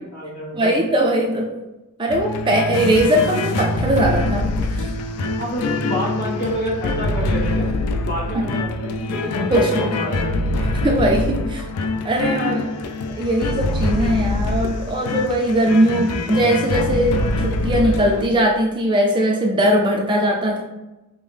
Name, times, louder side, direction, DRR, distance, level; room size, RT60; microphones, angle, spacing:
voice 1, 0.0-0.7 5.4-7.7 8.0-10.6, equal, 45° left, -4 dB, 1.2 m, -28 dB
voice 2, 0.5-1.5 2.0-4.9 9.5-9.8 10.8-11.7 12.0-12.8 13.2-20.6, right 1 dB, 20° right, 0 dB, 0.3 m, -20 dB
sound 1, 2.1-18.3, left 2 dB, 85° left, 0.4 m, -24 dB
5.2 x 2.0 x 3.3 m, 1.0 s
head